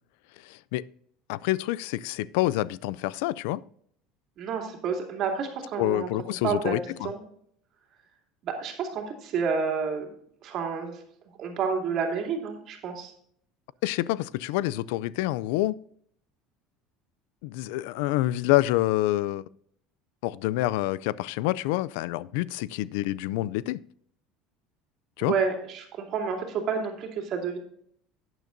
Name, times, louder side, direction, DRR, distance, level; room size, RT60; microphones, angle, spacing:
voice 1, 0.4-0.9 1.3-3.6 5.8-7.1 13.8-15.8 17.4-19.4 20.2-23.8 25.2-25.3, left 16 dB, 80° left, 0.3 m, -27 dB
voice 2, 4.4-6.1 6.4-6.8 7.0-7.2 8.4-10.1 10.4-11.0 11.4-13.1 25.2-27.6, right 5 dB, 45° right, 2.6 m, -29 dB
12.0 x 9.2 x 2.6 m
cardioid pair, 140°, 0 cm